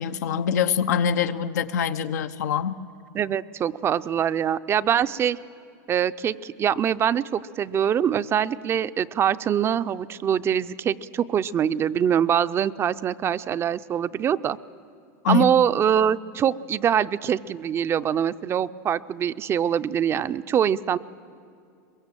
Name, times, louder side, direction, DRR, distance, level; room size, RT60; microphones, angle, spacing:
voice 1, 0.0-2.8 15.2-15.5, left 7 dB, 90° left, 9 dB, 0.8 m, -24 dB
voice 2, 3.1-5.4 5.9-14.6 15.3-21.0, right 9 dB, 30° right, 13 dB, 0.5 m, -24 dB
22.5 x 22.0 x 7.5 m, 2.4 s
supercardioid pair, 125°, 9 cm